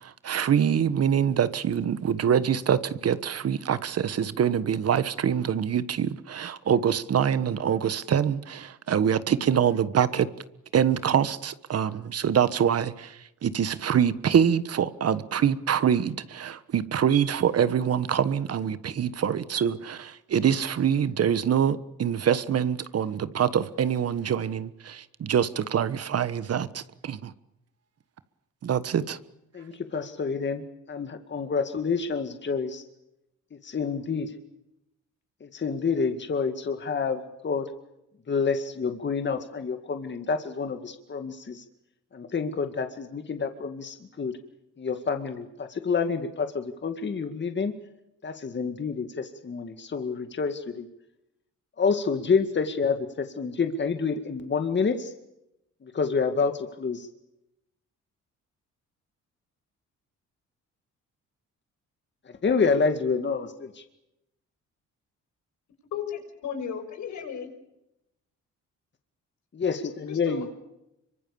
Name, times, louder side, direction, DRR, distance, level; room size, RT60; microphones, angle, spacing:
voice 1, 0.0-10.3 10.7-13.1 13.4-27.3 28.6-29.2, right 8 dB, 55° right, 1.4 m, -25 dB
voice 2, 29.5-32.8 33.5-34.3 35.4-37.7 38.3-41.6 42.1-44.4 44.8-47.7 48.2-50.9 51.8-55.1 55.8-57.1 62.3-63.8 69.5-70.5, left 5 dB, 35° left, 2.2 m, -28 dB
voice 3, 65.9-67.5 70.1-70.5, left 8 dB, 70° left, 6.2 m, -35 dB
25.5 x 24.0 x 7.1 m
cardioid pair, 90°, 30 cm